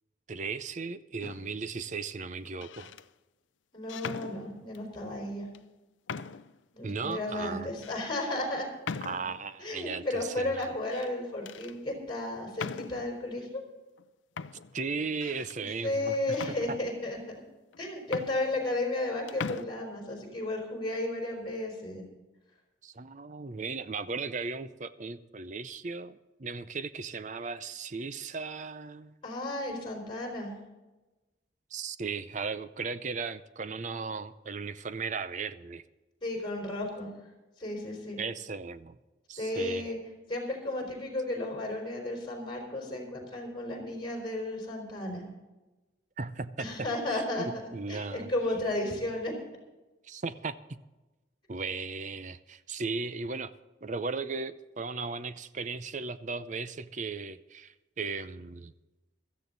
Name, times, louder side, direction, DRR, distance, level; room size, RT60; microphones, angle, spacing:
voice 1, 0.3-2.9 6.8-7.7 9.0-10.7 14.7-16.4 16.7-16.8 22.8-29.1 31.7-35.8 38.2-39.0 39.3-39.9 46.2-48.3 50.0-50.8 51.5-53.5 53.8-58.7, right 4 dB, 40° right, 14 dB, 0.6 m, -36 dB
sound 1, 1.2-1.7 2.5-3.1 3.9-4.9 5.5-5.6 6.1-6.6 7.1-7.2 7.8-8.0 8.8-9.5 10.6-11.1 11.5-11.8 12.6-13.2 14.0-14.1 14.4-15.6 16.3-17.2 17.7-17.8 18.0-19.0 19.3-19.7, left 5 dB, 85° left, 0.5 m, -40 dB
voice 2, 3.7-5.5 6.7-8.7 9.6-13.6 15.6-17.4 17.8-22.0 29.2-30.5 36.2-37.1 37.6-38.2 39.4-40.0 40.3-45.2 46.6-47.6 47.9-49.4, left 1 dB, 25° left, 1 dB, 4.3 m, -33 dB
16.5 x 13.5 x 4.0 m, 1.1 s
head